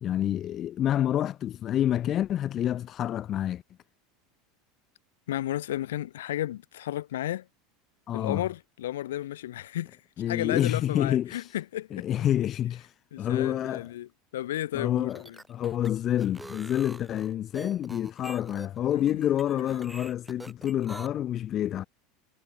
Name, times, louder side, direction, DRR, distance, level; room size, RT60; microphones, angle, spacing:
voice 1, 0.0-3.6 8.1-8.4 10.2-11.5 11.9-12.9 13.2-13.9 14.7-15.2 15.5-21.8, left 11 dB, 40° left, 1.3 m, -28 dB
voice 2, 5.3-7.5 8.1-10.0 10.3-12.1 13.1-15.4 18.8-19.2 19.5-19.9, left 13 dB, 90° left, 5.5 m, -33 dB
sound 1, 15.0-21.1, right 2 dB, 5° right, 5.7 m, -45 dB
supercardioid pair, 110°, 0 cm